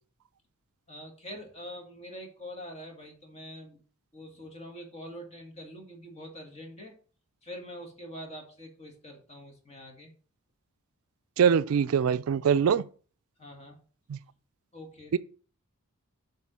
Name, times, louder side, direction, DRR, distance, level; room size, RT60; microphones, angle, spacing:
voice 1, 0.9-3.8 4.1-6.9 7.4-10.1 13.4-13.8 14.7-15.1, equal, 30° left, 1.9 m, -44 dB
voice 2, 11.4-12.8 14.1-14.2 15.1-15.2, right 7 dB, 70° right, 0.4 m, -23 dB
7.6 x 3.6 x 6.1 m
head